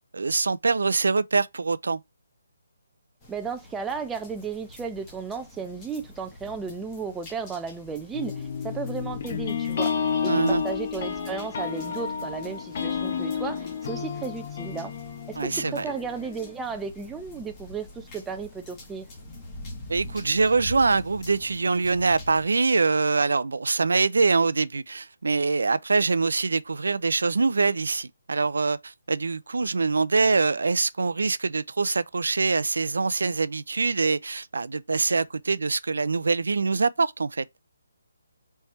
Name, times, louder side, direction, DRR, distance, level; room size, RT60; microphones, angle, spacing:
voice 1, 0.1-2.0 10.3-10.6 15.4-15.9 19.9-37.4, right 4 dB, 80° right, 0.4 m, -24 dB
sound 1, 3.2-22.4, left 1 dB, 20° left, 1.4 m, -45 dB
voice 2, 3.3-9.9 10.2-14.9 15.3-19.1, right 5 dB, 5° right, 0.5 m, -34 dB
sound 2, 8.1-16.5, left 6 dB, 40° left, 0.9 m, -31 dB
4.3 x 3.3 x 3.1 m
hypercardioid pair, 165°, 0 cm